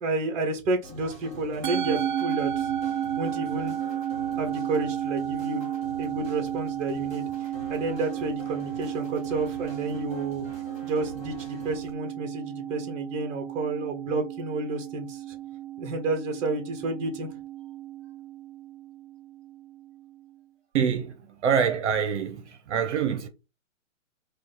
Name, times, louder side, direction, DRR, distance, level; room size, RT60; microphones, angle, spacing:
voice 1, 0.0-2.7 3.2-3.8 4.4-5.7 6.0-10.4 10.8-15.3 15.8-17.3, right 2 dB, 15° right, 1.3 m, -31 dB
sound 1, 0.8-11.9, equal, 15° left, 1.6 m, -45 dB
Musical instrument, 1.6-20.1, right 11 dB, 40° right, 0.5 m, -33 dB
voice 2, 20.7-23.3, right 7 dB, 60° right, 0.9 m, -26 dB
4.8 x 2.4 x 4.0 m
hypercardioid pair, 140°, 40 cm